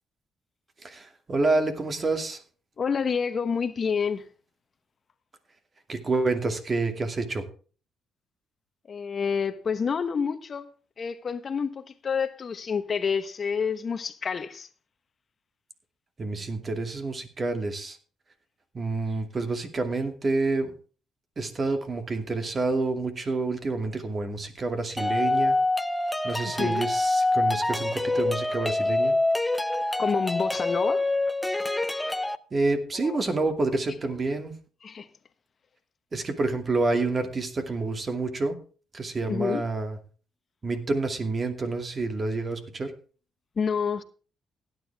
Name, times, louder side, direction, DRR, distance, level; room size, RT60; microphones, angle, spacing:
voice 1, 0.8-2.4 5.9-7.5 16.2-18.0 18.7-20.7 21.4-25.6 26.2-29.2 32.5-34.5 36.1-38.6 38.9-40.0 40.6-42.9, right 3 dB, 35° right, 2.4 m, -28 dB
voice 2, 2.8-4.2 8.9-10.7 11.0-14.7 26.4-26.9 30.0-31.0 32.9-33.2 34.8-35.1 39.3-39.6 43.6-44.0, left 6 dB, 45° left, 1.1 m, -28 dB
sound 1, 25.0-32.4, left 2 dB, 10° left, 0.7 m, -26 dB
16.5 x 10.0 x 3.5 m
cardioid pair, 90°, 0 cm